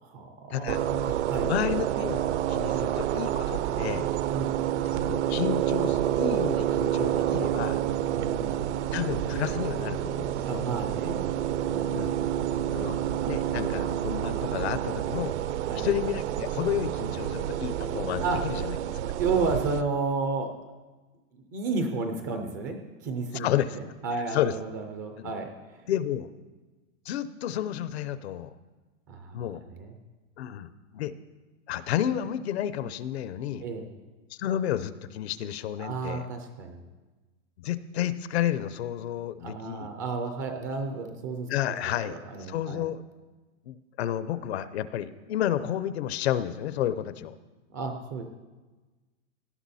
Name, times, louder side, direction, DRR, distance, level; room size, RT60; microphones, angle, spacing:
voice 1, 0.0-1.5 2.7-2.9 4.3-4.5 8.1-8.6 10.4-11.2 11.6-12.0 15.7-15.8 18.2-18.4 19.2-20.5 21.3-25.9 29.1-29.9 33.6-33.9 35.8-36.8 39.4-41.8 42.0-42.8 47.7-48.2, right 4 dB, 15° right, 5 dB, 0.4 m, -32 dB
sound 1, 0.7-19.8, right 11 dB, 65° right, 0.7 m, -28 dB
voice 2, 1.1-4.1 4.9-7.8 8.9-10.6 11.9-12.2 12.7-13.0 13.2-15.3 15.8-18.8 23.3-23.8 24.3-24.5 25.2-25.3 25.9-26.3 27.1-28.5 29.3-29.6 30.4-30.7 30.9-31.1 31.7-33.6 34.4-36.3 37.6-39.9 41.5-42.2 42.5-43.0 43.7-47.4, left 11 dB, 55° left, 14 dB, 0.7 m, -31 dB
18.0 x 12.0 x 4.2 m, 1.3 s
supercardioid pair, 175°, 38 cm